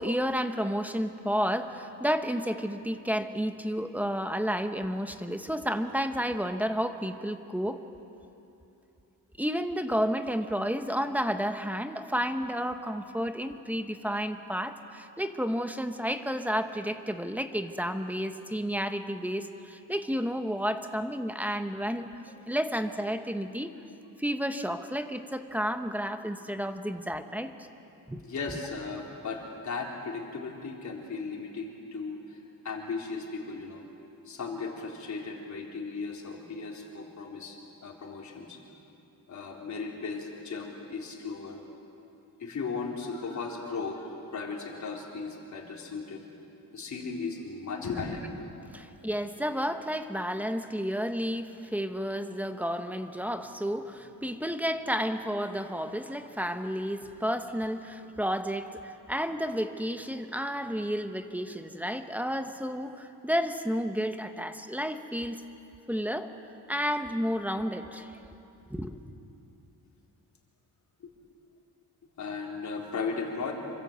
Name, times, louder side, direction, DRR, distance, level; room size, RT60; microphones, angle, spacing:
voice 1, 0.0-7.8 9.4-23.7 24.2-27.5 28.1-28.2 48.7-65.4 65.9-66.3 66.7-68.2 68.7-69.0, equal, 5° right, 7 dB, 1.0 m, -31 dB
voice 2, 28.2-32.4 32.6-33.9 34.2-38.6 39.3-41.6 42.4-46.2 46.7-48.8 71.0-71.1 72.2-73.5, left 4 dB, 50° left, 0 dB, 4.0 m, -36 dB
27.0 x 25.0 x 8.1 m, 2.8 s
wide cardioid pair, 165°, 36 cm